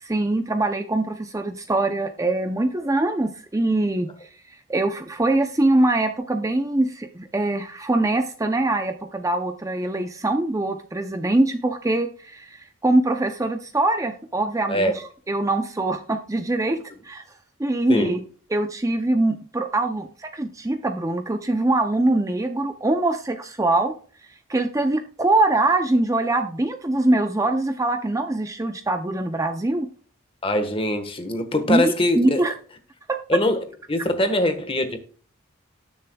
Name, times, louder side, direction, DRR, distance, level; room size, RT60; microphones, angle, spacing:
voice 1, 0.0-4.3 4.7-14.9 15.3-17.2 17.6-18.2 18.5-23.9 24.5-29.9 31.7-32.5 33.1-33.2, right 2 dB, 15° right, 0.5 m, -23 dB
voice 2, 30.4-32.4 33.3-35.0, left 1 dB, 25° left, 1.3 m, -23 dB
19.0 x 6.9 x 2.3 m
head